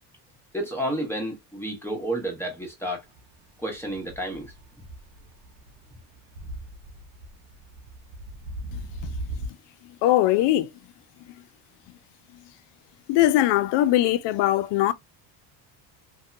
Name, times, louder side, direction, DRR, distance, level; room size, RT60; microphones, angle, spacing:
voice 1, 0.5-3.0 3.6-4.5, right 1 dB, 5° left, 1.1 m, -30 dB
sound 1, 3.1-9.5, right 1 dB, 75° right, 0.8 m, -39 dB
voice 2, 10.0-10.7 13.1-14.9, left 14 dB, 60° left, 0.5 m, -20 dB
2.6 x 2.2 x 2.4 m
supercardioid pair, 85°, 48 cm